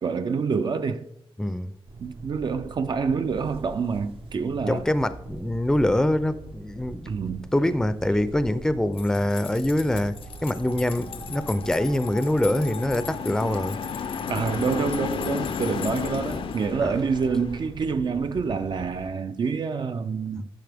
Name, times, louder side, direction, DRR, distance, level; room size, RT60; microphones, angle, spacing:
voice 1, 0.0-1.1 2.0-4.9 7.1-7.5 14.3-20.5, right 5 dB, 55° right, 0.4 m, -27 dB
voice 2, 1.4-1.7 4.7-7.1 7.5-13.8 16.8-16.9, left 1 dB, 5° left, 0.4 m, -24 dB
sound 1, 1.9-19.1, right 3 dB, 70° right, 0.9 m, -43 dB
sound 2, 8.9-16.7, left 8 dB, 85° left, 0.9 m, -42 dB
sound 3, 10.3-17.7, left 7 dB, 65° left, 0.5 m, -34 dB
9.5 x 6.5 x 3.4 m
wide cardioid pair, 110°, 9 cm